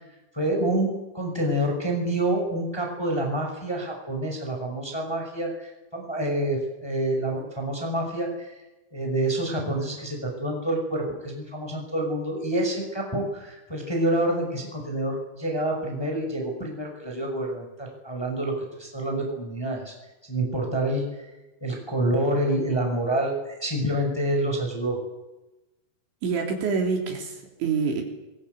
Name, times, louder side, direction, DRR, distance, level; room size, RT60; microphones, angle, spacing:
voice 1, 0.3-8.5 8.9-19.9 20.3-21.1 21.6-25.0, right 1 dB, 5° left, 1 dB, 5.5 m, -27 dB
voice 2, 26.2-28.0, right 5 dB, 65° right, 2 dB, 5.5 m, -26 dB
25.5 x 23.0 x 8.2 m, 1.0 s
omnidirectional pair, 5.9 m